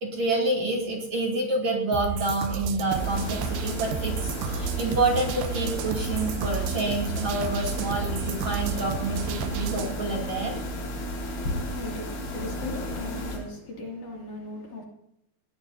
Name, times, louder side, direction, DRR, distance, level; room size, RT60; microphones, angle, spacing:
voice 1, 0.0-10.6, right 2 dB, 45° right, -1 dB, 3.8 m, -28 dB
sound 1, 1.9-9.9, right 9 dB, 75° right, 2.2 m, -32 dB
sound 2, 2.9-13.4, left 1 dB, 80° left, 6.5 m, -33 dB
voice 2, 11.8-14.8, left 2 dB, 50° left, -1 dB, 3.9 m, -38 dB
21.0 x 17.5 x 2.8 m, 0.78 s
omnidirectional pair, 4.8 m